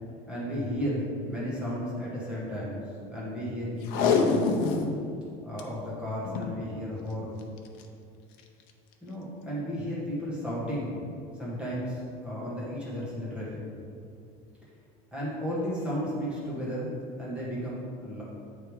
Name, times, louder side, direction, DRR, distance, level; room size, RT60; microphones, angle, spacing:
voice 1, 0.3-2.8 3.1-4.5 5.4-7.4 9.0-10.9 11.3-13.6 15.1-18.2, equal, 5° right, -8 dB, 1.3 m, -33 dB
Packing tape duct tape, 3.8-5.0 5.3-5.4 5.6-5.7 6.2-6.6 7.6-7.8 8.4-8.5, left 4 dB, 60° left, 0.7 m, -25 dB
8.8 x 3.5 x 4.7 m, 2.4 s
cardioid pair, 155°, 16 cm